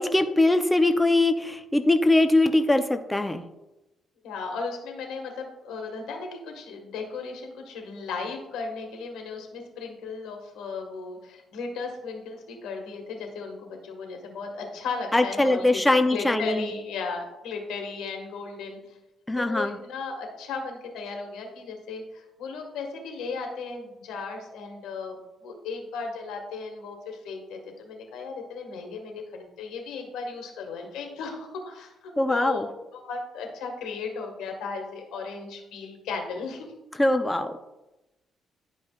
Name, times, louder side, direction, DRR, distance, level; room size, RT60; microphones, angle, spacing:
voice 1, 0.0-3.4 15.1-16.7 19.3-19.8 32.2-32.7 37.0-37.6, left 2 dB, 10° left, 7 dB, 0.5 m, -22 dB
voice 2, 4.2-15.8 16.1-18.8 19.3-36.7, left 4 dB, 90° left, 3 dB, 1.5 m, -36 dB
11.0 x 5.2 x 2.4 m, 0.99 s
cardioid pair, 90°, 0 cm